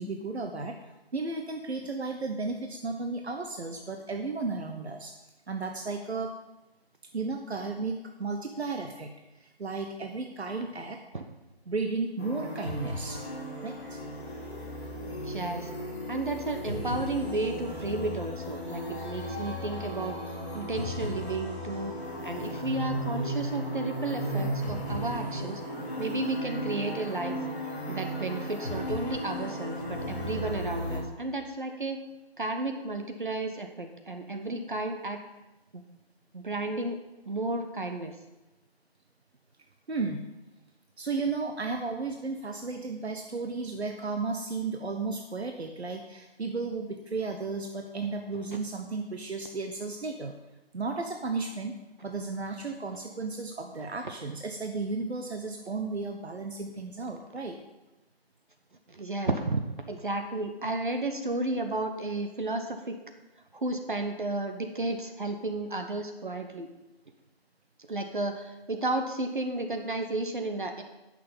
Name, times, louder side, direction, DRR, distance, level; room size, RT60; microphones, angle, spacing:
voice 1, 0.0-5.1 5.5-6.3 7.1-9.1 9.4-11.0 11.7-13.2 13.6-14.0 25.7-25.9 39.9-40.2 41.0-50.3 50.7-51.8 52.0-57.6, right 3 dB, 85° right, 4 dB, 1.2 m, -34 dB
sound 1, 12.2-31.0, equal, 15° left, 1.9 m, -35 dB
voice 2, 15.2-15.7 16.1-20.2 20.5-21.9 22.2-25.6 26.0-27.3 27.9-32.0 32.4-35.2 35.7-35.8 36.3-37.0 37.3-38.2 58.9-59.6 59.9-63.0 63.5-66.7 67.9-70.8, right 2 dB, 50° right, 5 dB, 1.1 m, -32 dB
10.5 x 6.7 x 7.2 m, 1.0 s
figure-of-eight pair, 180°, 31 cm